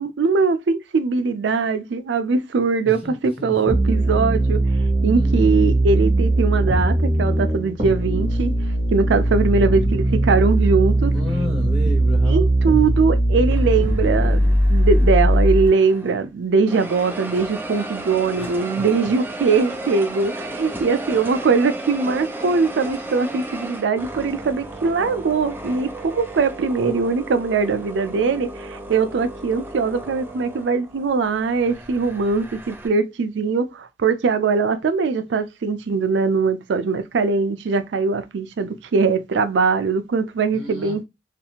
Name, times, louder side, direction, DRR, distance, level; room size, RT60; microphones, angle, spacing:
voice 1, 0.0-4.6 5.0-8.5 8.9-11.1 12.3-41.0, right 4 dB, 85° right, 0.4 m, -21 dB
voice 2, 2.8-3.6 5.1-5.5 11.1-12.5 18.4-18.9 40.5-41.0, left 1 dB, 35° left, 0.8 m, -32 dB
sound 1, 3.7-15.7, right 1 dB, 35° right, 1.0 m, -19 dB
sound 2, 13.5-16.3 16.7-32.9, right 2 dB, 10° right, 0.4 m, -35 dB
2.5 x 2.4 x 2.8 m
head